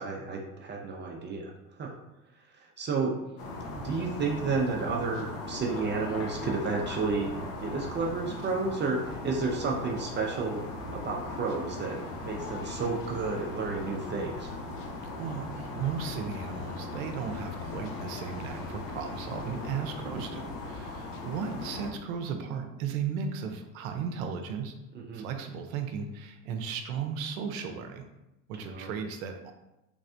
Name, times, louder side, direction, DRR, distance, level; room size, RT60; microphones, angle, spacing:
voice 1, 0.0-1.5 1.8-1.9 2.8-3.2 3.7-7.3 7.6-10.6 10.9-14.5 24.9-25.3 28.5-28.9, right 4 dB, 25° right, 0 dB, 0.5 m, -31 dB
sound 1, 3.4-21.9, left 2 dB, 60° left, 1.0 m, -39 dB
sound 2, 4.0-5.3 5.7-11.7 12.1-21.4 21.7-21.9, left 2 dB, 30° left, 0.6 m, -49 dB
voice 2, 15.2-24.7 25.1-28.0 28.5-29.5, right 6 dB, 75° right, 6 dB, 0.7 m, -35 dB
3.4 x 3.1 x 2.6 m, 0.94 s
hypercardioid pair, 90°, 42 cm